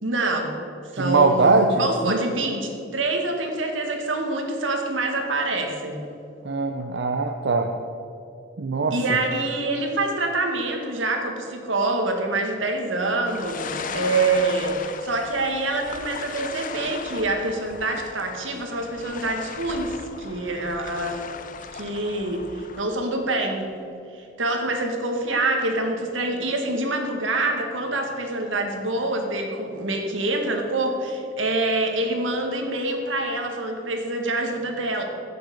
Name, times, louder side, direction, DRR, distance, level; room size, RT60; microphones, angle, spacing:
voice 1, 0.0-0.5 0.9-1.5 1.8-6.1 8.9-21.2 21.7-23.7 24.1-35.0, right 2 dB, 85° right, 3 dB, 1.9 m, -26 dB
voice 2, 1.0-2.2 6.4-7.7 8.6-9.2, right 3 dB, 65° right, 4 dB, 0.7 m, -21 dB
sound 1, 13.2-22.8, left 5 dB, 45° left, 0.6 m, -37 dB
14.5 x 6.9 x 6.5 m, 2.5 s
head